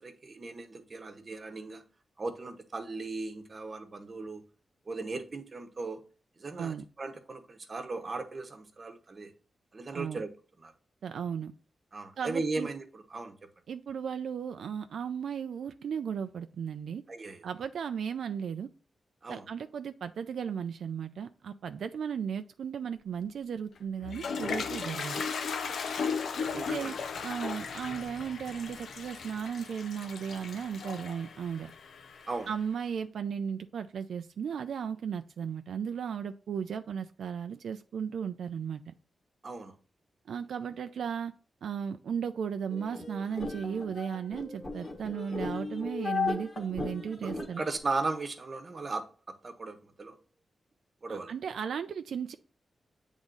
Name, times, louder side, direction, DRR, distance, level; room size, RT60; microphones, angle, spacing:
voice 1, 0.0-1.8 2.2-4.4 4.9-6.0 6.4-9.3 9.7-10.3 10.6-10.7 11.9-13.3 17.1-17.4 19.2-19.4 26.4-26.9 32.3-32.5 39.4-39.7 47.2-49.0 49.4-50.2 51.0-51.3, right 3 dB, 35° right, 1.0 m, -37 dB
voice 2, 9.9-10.2 11.0-11.5 12.2-12.7 13.7-17.0 17.4-18.7 19.3-25.2 26.5-26.9 27.2-31.7 32.5-38.9 40.3-41.3 41.6-47.6 51.1-52.4, right 7 dB, 85° right, 0.4 m, -35 dB
Toilet flush, 23.8-32.6, left 5 dB, 80° left, 0.7 m, -36 dB
sound 1, 42.7-47.8, left 4 dB, 30° left, 1.3 m, -36 dB
8.1 x 3.6 x 3.8 m
wide cardioid pair, 120°, 0 cm